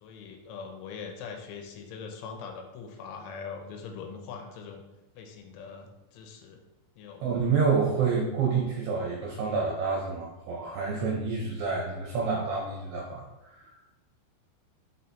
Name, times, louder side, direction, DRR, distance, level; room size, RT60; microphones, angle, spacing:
voice 1, 0.0-4.8 5.1-6.6 7.0-7.3, left 5 dB, 90° left, 3 dB, 3.1 m, -42 dB
voice 2, 7.2-13.7, right 5 dB, 80° right, -2 dB, 2.4 m, -28 dB
6.3 x 5.6 x 2.7 m, 0.97 s
omnidirectional pair, 5.5 m